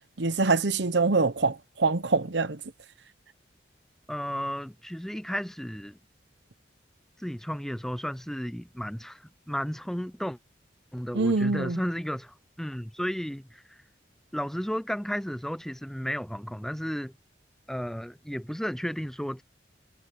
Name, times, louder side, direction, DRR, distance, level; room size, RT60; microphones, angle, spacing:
voice 1, 0.2-2.6 11.1-11.8, right 3 dB, 70° right, 1.0 m, -24 dB
voice 2, 4.1-6.0 7.2-10.4 10.9-13.8 14.3-17.1 17.7-19.4, equal, ahead, 0.7 m, -33 dB
head